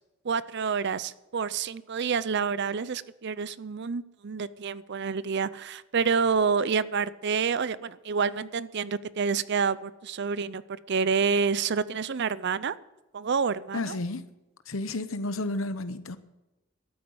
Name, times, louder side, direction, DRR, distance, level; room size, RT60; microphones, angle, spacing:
voice 1, 0.2-10.6 10.9-12.7 13.1-14.0, right 5 dB, 55° right, 0.5 m, -28 dB
voice 2, 13.7-14.2 14.7-16.2, left 2 dB, 75° left, 0.9 m, -31 dB
12.5 x 9.2 x 7.9 m
head